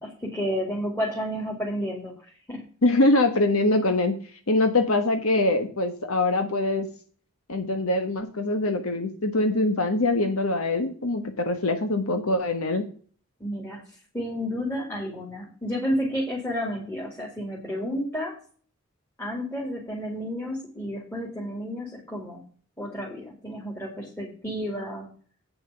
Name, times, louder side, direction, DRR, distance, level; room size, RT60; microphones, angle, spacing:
voice 1, 0.0-2.7 13.4-13.8 14.1-18.4 19.2-22.4 22.8-25.1, equal, 10° left, -3 dB, 2.5 m, -31 dB
voice 2, 2.8-4.1 4.5-6.9 7.5-12.9, left 2 dB, 85° left, 7 dB, 1.4 m, -23 dB
8.8 x 5.7 x 6.7 m, 0.43 s
head